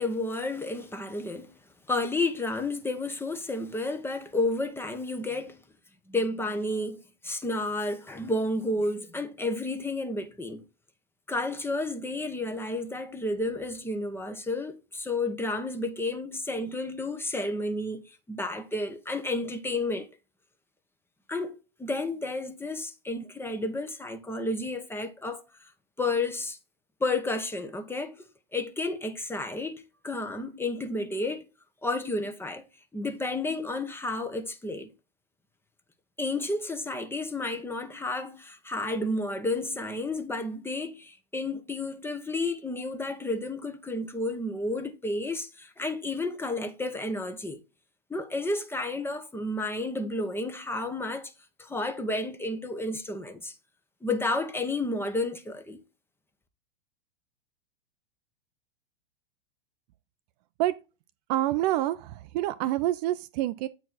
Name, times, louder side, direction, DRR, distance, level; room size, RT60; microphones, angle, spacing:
voice 1, 0.0-1.5 1.9-5.6 6.1-10.6 11.3-20.1 21.3-25.4 26.0-26.6 27.0-28.2 28.5-31.4 31.8-32.6 32.9-34.9 36.2-47.6 48.1-51.3 51.6-53.5 54.0-55.8, left 2 dB, 10° left, 1.1 m, -31 dB
voice 2, 61.3-63.7, right 14 dB, 45° right, 0.6 m, -27 dB
8.9 x 4.5 x 4.2 m
figure-of-eight pair, 100°, 29 cm